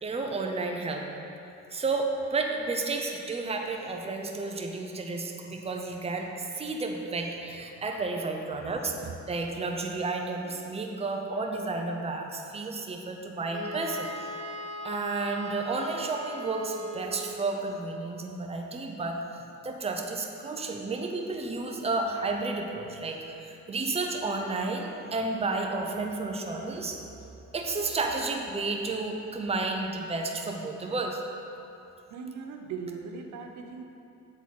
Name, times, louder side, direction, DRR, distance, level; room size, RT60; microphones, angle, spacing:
voice 1, 0.0-1.1 1.7-8.9 9.3-14.3 14.8-23.2 23.4-27.0 27.5-31.2, right 3 dB, 20° right, 2 dB, 0.6 m, -32 dB
Wind instrument woodwind instrument, 13.5-17.6, right 1 dB, 45° right, 1.1 m, -39 dB
voice 2, 32.1-33.8, right 5 dB, 70° right, 4 dB, 0.6 m, -39 dB
7.5 x 4.0 x 4.1 m, 2.8 s
cardioid pair, 90°, 30 cm